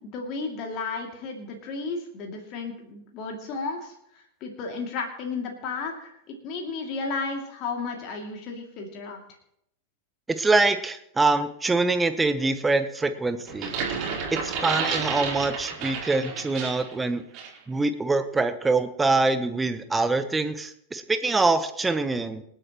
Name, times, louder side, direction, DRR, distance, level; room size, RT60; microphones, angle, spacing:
voice 1, 0.0-9.2, left 4 dB, 40° left, 1 dB, 2.6 m, -33 dB
voice 2, 10.3-13.7 14.3-17.2 17.7-22.4, right 3 dB, 10° right, 11 dB, 1.0 m, -24 dB
sound 1, 13.5-16.9 17.3-17.6, right 5 dB, 40° right, 4.1 m, -31 dB
26.5 x 9.0 x 3.1 m, 0.74 s
figure-of-eight pair, 90°, 0 cm